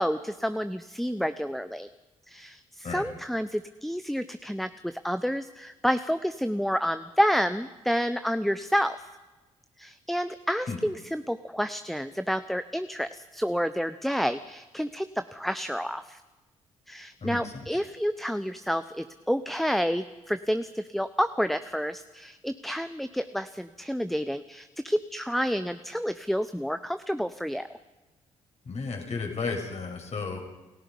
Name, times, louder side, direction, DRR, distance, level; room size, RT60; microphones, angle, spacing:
voice 1, 0.0-1.9 2.3-9.0 9.8-16.2 16.9-27.7, equal, ahead, 12 dB, 0.9 m, -29 dB
voice 2, 17.2-17.7 28.6-30.4, left 4 dB, 45° left, 2 dB, 6.3 m, -33 dB
29.0 x 17.5 x 5.4 m, 1.1 s
figure-of-eight pair, 45°, 16 cm